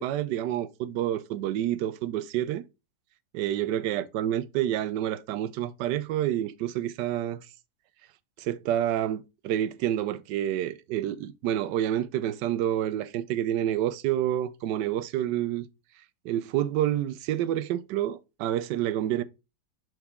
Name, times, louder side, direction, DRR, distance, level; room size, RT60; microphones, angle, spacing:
voice 1, 0.0-2.6 3.3-7.5 8.4-15.7 16.2-19.2, right 12 dB, 75° right, 1.2 m, -28 dB
6.4 x 4.7 x 3.5 m
omnidirectional pair, 1.9 m